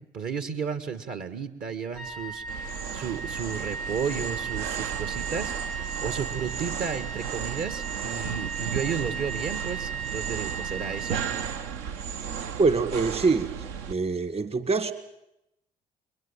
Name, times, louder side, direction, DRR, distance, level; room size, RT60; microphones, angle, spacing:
voice 1, 0.1-11.2, right 6 dB, 50° right, 10 dB, 1.7 m, -33 dB
Wind instrument woodwind instrument, 1.9-12.0, right 6 dB, 85° right, 4.9 m, -36 dB
sound 1, 2.5-13.9, right 7 dB, 70° right, 1.1 m, -34 dB
voice 2, 12.6-13.5 13.9-14.9, right 4 dB, 35° right, 11 dB, 1.9 m, -24 dB
29.5 x 22.0 x 7.4 m, 0.84 s
figure-of-eight pair, 50°, 19 cm